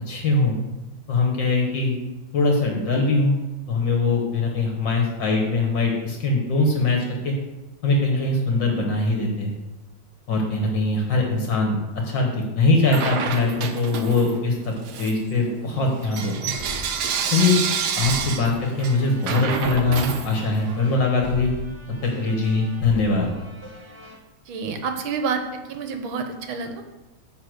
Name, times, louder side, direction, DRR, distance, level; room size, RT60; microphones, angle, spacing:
voice 1, 0.1-0.6 1.1-1.9 2.3-3.4 3.7-7.3 7.8-9.5 10.3-11.8 12.1-14.7 15.0-16.5 17.3-17.6 18.0-21.5 22.0-23.3, left 3 dB, 65° left, 0 dB, 2.0 m, -22 dB
Bell / Coin (dropping), 12.9-14.4 14.8-20.8, right 7 dB, 60° right, 1.3 m, -29 dB
sound 1, 16.6-24.2, equal, 15° right, 1.2 m, -40 dB
voice 2, 24.5-26.8, right 5 dB, 75° right, 6 dB, 1.7 m, -28 dB
11.5 x 4.1 x 7.9 m, 1.1 s
omnidirectional pair, 2.3 m